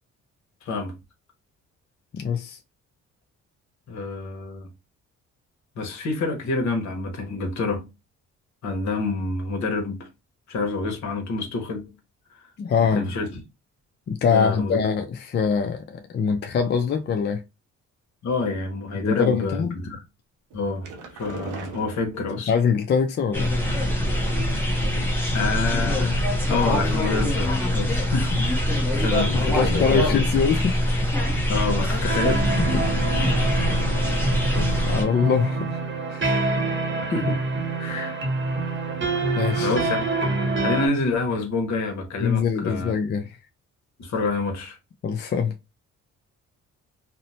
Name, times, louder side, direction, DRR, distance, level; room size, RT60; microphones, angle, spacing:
voice 1, 0.6-0.9 3.9-4.7 5.8-7.9 8.6-10.1 10.5-11.8 12.9-13.4 14.2-14.9 18.2-20.0 20.5-22.5 25.3-28.4 28.9-30.1 31.5-32.4 32.7-32.8 33.2-33.6 37.0-37.4 37.8-38.2 39.5-40.0 40.6-42.9 44.0-44.8, left 3 dB, 65° left, 1.0 m, -27 dB
voice 2, 2.1-2.6 12.6-13.1 14.1-17.4 18.9-19.8 22.5-23.5 29.3-31.1 32.7-33.3 34.6-35.8 36.1-36.3 39.4-39.8 42.2-43.4 45.0-45.5, left 6 dB, 35° left, 0.4 m, -24 dB
sound 1, 20.5-22.6 23.6-24.5 24.9-25.4 25.6-25.7 26.1-26.2, right 4 dB, 80° right, 0.7 m, -40 dB
sound 2, 23.3-35.0, left 1 dB, 5° left, 0.8 m, -23 dB
sound 3, 32.1-40.9, right 3 dB, 40° right, 0.9 m, -26 dB
2.7 x 2.0 x 2.7 m
cardioid pair, 90°, 30 cm